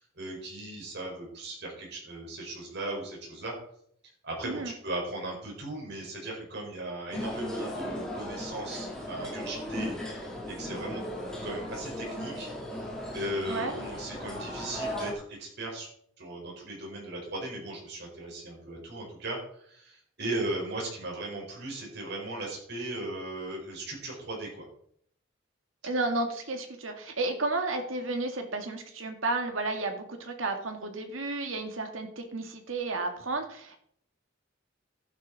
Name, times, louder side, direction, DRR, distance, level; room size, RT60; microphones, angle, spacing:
voice 1, 0.2-3.5 4.2-10.0 10.5-11.0 11.4-12.5 13.1-15.9 16.2-24.6, right 1 dB, 60° right, -1 dB, 4.6 m, -37 dB
voice 2, 4.4-4.8 13.5-13.7 25.8-33.8, right 2 dB, 90° right, 5 dB, 2.0 m, -32 dB
sound 1, 7.1-15.1, left 1 dB, 5° left, 3.0 m, -37 dB
12.0 x 9.6 x 4.1 m, 0.65 s
head